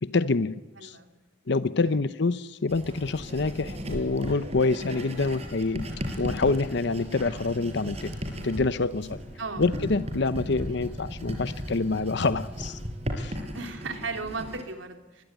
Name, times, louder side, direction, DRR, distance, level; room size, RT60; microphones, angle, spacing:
voice 1, 0.0-0.6 0.8-1.0 1.5-5.9 6.2-8.1 8.4-9.2 9.6-12.8 13.2-13.4, left 3 dB, 65° left, 14 dB, 0.8 m, -26 dB
voice 2, 0.8-1.1 1.8-2.0 9.4-9.8 10.6-10.8 13.5-15.2, right 4 dB, 90° right, 6 dB, 3.4 m, -36 dB
Writing, 2.7-14.6, equal, 35° right, 5.6 m, -36 dB
24.0 x 22.0 x 9.2 m, 1.1 s
head